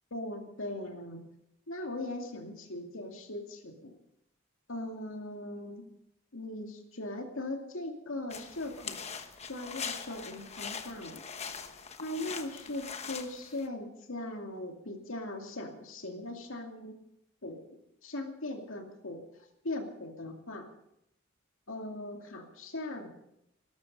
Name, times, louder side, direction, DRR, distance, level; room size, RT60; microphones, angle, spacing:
voice 1, 0.1-1.2 1.7-4.0 4.7-5.9 6.3-11.2 12.0-16.9 17.4-17.6 18.0-19.2 19.6-20.7 21.7-23.1, left 1 dB, 70° left, 4 dB, 2.5 m, -39 dB
sound 1, 8.3-13.7, left 6 dB, 30° left, 1.2 m, -42 dB
19.0 x 13.0 x 5.4 m, 0.82 s
head